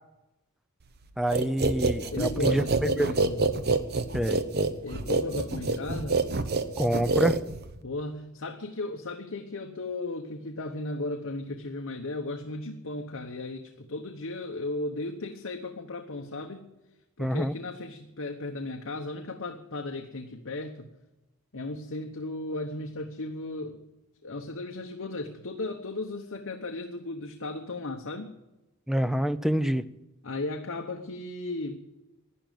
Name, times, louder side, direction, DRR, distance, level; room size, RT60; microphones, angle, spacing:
voice 1, 1.2-2.6 3.0-3.1 4.1-4.4 6.8-7.4 17.2-17.5 28.9-29.8, equal, ahead, 13 dB, 0.5 m, -26 dB
sound 1, 1.3-7.8, right 3 dB, 45° right, 0.9 m, -27 dB
voice 2, 2.1-3.4 4.8-6.2 7.8-16.7 17.2-20.9 21.5-23.8 24.2-28.3 30.2-31.8, left 2 dB, 60° left, 4 dB, 1.0 m, -35 dB
11.5 x 10.5 x 9.2 m, 1.0 s
head